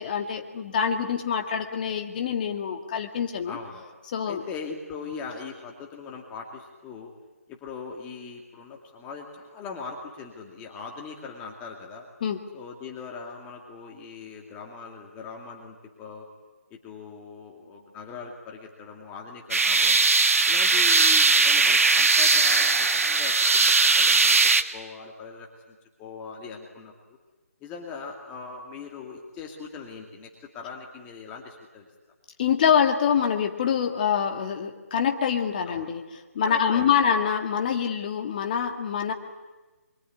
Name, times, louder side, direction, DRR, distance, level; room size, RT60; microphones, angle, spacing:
voice 1, 0.0-3.6 4.1-4.4 12.2-12.4 32.4-36.0 36.3-39.1, left 7 dB, 35° left, 4 dB, 2.1 m, -25 dB
voice 2, 3.5-4.0 4.2-7.1 7.5-12.1 12.5-16.3 16.7-20.1 20.5-24.4 24.7-27.2 27.6-31.9 35.7-35.9 36.4-36.9, left 5 dB, 15° left, 0 dB, 2.4 m, -40 dB
sound 1, 19.5-24.6, right 4 dB, 65° right, 1.7 m, -19 dB
24.0 x 24.0 x 9.6 m, 1.2 s
figure-of-eight pair, 155°, 8 cm